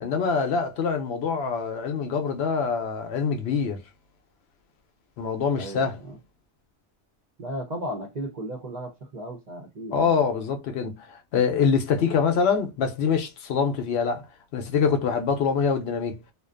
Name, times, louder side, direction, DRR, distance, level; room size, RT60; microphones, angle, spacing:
voice 1, 0.0-3.8 5.2-6.0 9.9-14.3 14.5-16.2, left 6 dB, 70° left, 0.8 m, -25 dB
voice 2, 5.6-6.2 7.4-10.1, right 1 dB, 45° right, 0.6 m, -35 dB
2.5 x 2.1 x 2.3 m
omnidirectional pair, 1.2 m